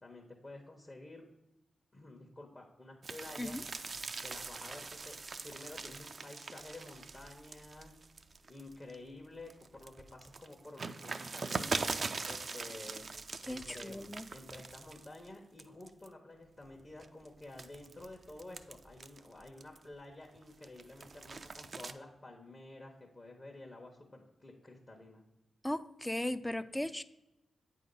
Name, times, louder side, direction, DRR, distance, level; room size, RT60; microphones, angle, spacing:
voice 1, 0.0-1.2 1.9-3.6 4.2-5.2 5.4-7.9 8.5-13.1 13.4-25.2, left 2 dB, 40° left, 1 dB, 1.0 m, -51 dB
sound 1, 3.0-8.9 9.4-15.3 15.6-16.1 16.6-19.9 20.4-21.9, right 4 dB, 55° right, 0.4 m, -42 dB
voice 2, 13.5-14.3 25.6-27.0, left 1 dB, 15° left, 13 dB, 0.4 m, -37 dB
8.2 x 2.8 x 5.3 m, 0.93 s
supercardioid pair, 45°, 0 cm